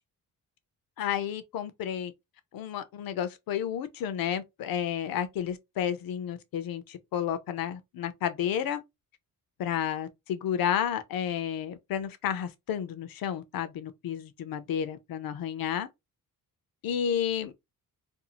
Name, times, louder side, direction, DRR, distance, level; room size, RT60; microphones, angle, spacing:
voice 1, 1.0-2.1 2.5-8.8 9.6-15.9 16.8-17.5, left 9 dB, 70° left, 0.6 m, -31 dB
2.6 x 2.3 x 2.8 m
wide cardioid pair, 155°, 36 cm